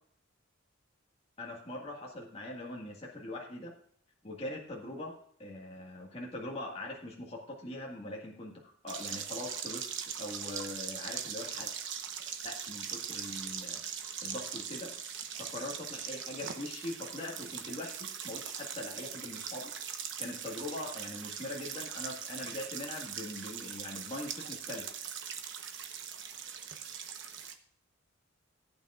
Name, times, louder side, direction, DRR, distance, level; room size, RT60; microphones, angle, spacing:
voice 1, 1.4-3.7 4.2-5.1 5.4-9.9 10.2-11.7 12.4-13.8 14.2-15.0 15.4-19.7 20.2-24.9, left 1 dB, 30° left, -2 dB, 1.8 m, -42 dB
sound 1, 8.9-27.5, right 8 dB, 55° right, 1.0 m, -41 dB
16.0 x 8.8 x 2.5 m, 0.62 s
head